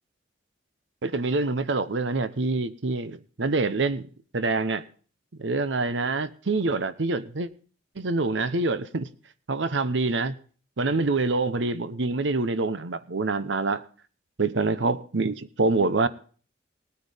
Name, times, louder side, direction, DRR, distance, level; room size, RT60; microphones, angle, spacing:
voice 1, 1.0-4.1 4.3-4.8 5.4-7.5 8.0-9.1 9.5-10.4 10.8-13.8 14.4-16.1, right 3 dB, 80° right, 0.8 m, -26 dB
19.0 x 9.5 x 3.5 m
head